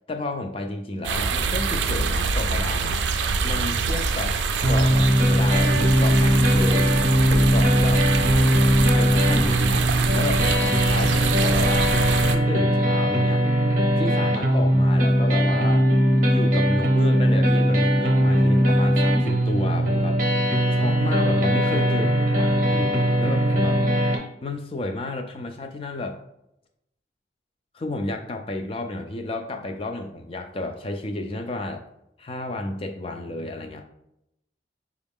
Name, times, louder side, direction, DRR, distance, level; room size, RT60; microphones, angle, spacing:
voice 1, 0.1-3.0 3.4-4.4 4.7-7.0 7.3-8.1 8.9-11.9 12.3-13.5 14.0-15.9 16.3-20.2 20.7-22.9 23.2-23.8 24.4-26.2 27.7-31.8 32.2-33.8, left 2 dB, 30° left, 5 dB, 0.4 m, -31 dB
sound 1, 1.0-12.4, right 4 dB, 85° right, 0.4 m, -25 dB
sound 2, 4.6-24.2, equal, 45° right, 0.7 m, -20 dB
5.1 x 2.4 x 3.5 m, 0.84 s
head